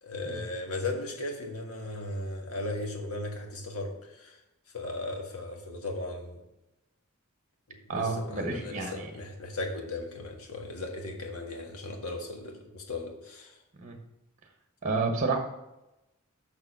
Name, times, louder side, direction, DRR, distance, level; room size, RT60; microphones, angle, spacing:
voice 1, 0.0-4.4 4.7-6.4 7.9-13.5, left 2 dB, 75° left, 2 dB, 1.6 m, -37 dB
voice 2, 7.9-9.1 13.8-14.0 14.8-15.4, right 3 dB, 35° right, 3 dB, 1.1 m, -30 dB
6.7 x 6.2 x 6.0 m, 0.95 s
head